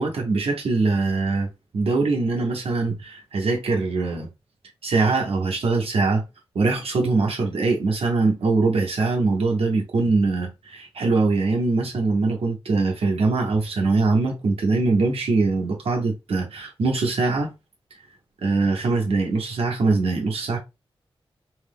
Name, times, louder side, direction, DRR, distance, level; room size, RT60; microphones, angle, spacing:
voice 1, 0.0-1.5 1.7-4.3 4.8-6.2 6.5-17.5 18.4-20.6, right 3 dB, 80° right, 0.8 m, -22 dB
2.8 x 2.0 x 3.4 m
wide cardioid pair, 155°, 10 cm